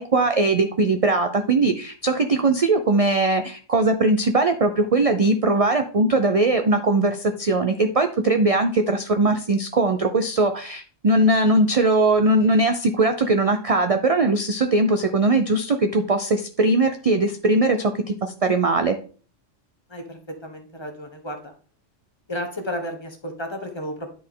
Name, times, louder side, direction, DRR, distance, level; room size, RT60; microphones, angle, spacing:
voice 1, 0.0-17.9 18.2-19.0, right 2 dB, 45° right, 7 dB, 0.5 m, -20 dB
voice 2, 19.9-21.5 22.3-24.1, equal, 25° left, 4 dB, 1.2 m, -32 dB
10.0 x 4.3 x 3.7 m, 0.39 s
omnidirectional pair, 1.3 m